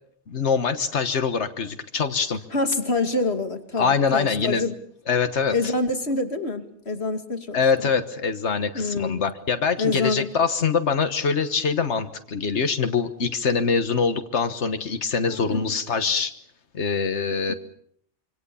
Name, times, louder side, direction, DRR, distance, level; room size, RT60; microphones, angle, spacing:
voice 1, 0.3-2.4 3.8-4.6 5.1-5.7 7.5-16.3 16.7-17.5, left 5 dB, 90° left, 8 dB, 1.6 m, -24 dB
voice 2, 2.5-4.7 5.5-7.6 8.7-9.2 9.8-10.3 15.3-15.6 17.5-17.6, left 3 dB, 70° left, 7 dB, 2.9 m, -26 dB
27.0 x 25.5 x 7.0 m, 0.67 s
omnidirectional pair, 1.1 m